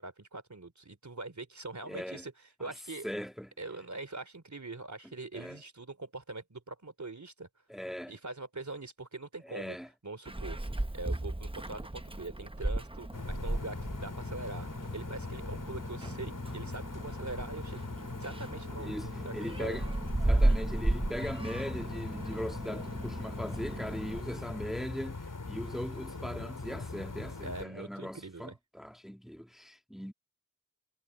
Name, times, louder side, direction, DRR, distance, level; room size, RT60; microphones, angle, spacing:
voice 1, 0.0-2.3 2.6-3.1 3.6-7.5 8.1-9.8 10.0-10.6 10.9-19.8 27.4-28.5, right 3 dB, 60° right, 3.4 m, -43 dB
voice 2, 1.9-2.2 2.6-2.7 3.0-3.5 5.3-5.6 7.7-8.1 9.4-9.9 18.8-19.8 20.2-25.2 25.5-30.1, equal, ahead, 1.9 m, -39 dB
Meow, 10.3-24.2, right 1 dB, 15° right, 1.0 m, -35 dB
sound 1, 13.1-27.6, left 3 dB, 70° left, 3.2 m, -41 dB
wide cardioid pair, 50°, 32 cm